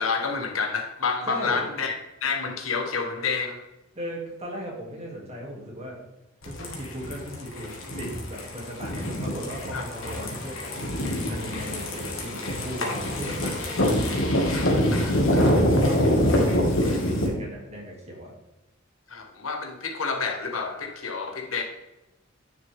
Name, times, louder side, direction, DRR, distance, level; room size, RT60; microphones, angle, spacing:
voice 1, 0.0-1.9 2.2-3.6 9.7-9.8 14.5-15.5 19.1-21.6, left 5 dB, 90° left, 3 dB, 1.5 m, -29 dB
voice 2, 1.3-1.6 3.9-6.0 6.4-10.9 11.3-13.7 15.4-16.6 17.0-18.3, equal, 35° right, -2 dB, 2.7 m, -37 dB
sound 1, 6.4-17.3, equal, 70° left, 2.0 m, -25 dB
9.9 x 6.6 x 3.6 m, 0.99 s
head